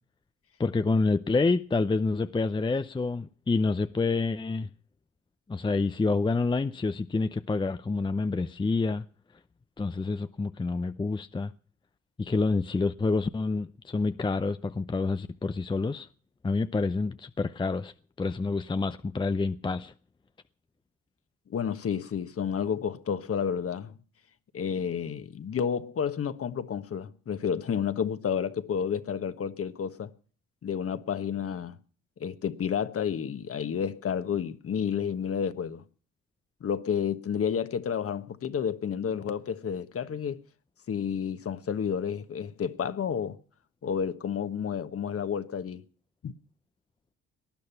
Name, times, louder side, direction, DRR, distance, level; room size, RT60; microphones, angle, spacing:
voice 1, 0.6-4.7 5.5-9.0 9.8-11.5 12.2-16.1 16.4-17.9 18.2-19.9, left 3 dB, 15° left, 0.6 m, -28 dB
voice 2, 21.5-23.9 24.5-30.1 30.6-31.7 32.2-35.8 36.6-40.4 40.9-43.4 43.8-45.8 46.2-46.3, left 7 dB, 50° left, 1.4 m, -30 dB
19.0 x 10.5 x 5.8 m
cardioid pair, 90°, 30 cm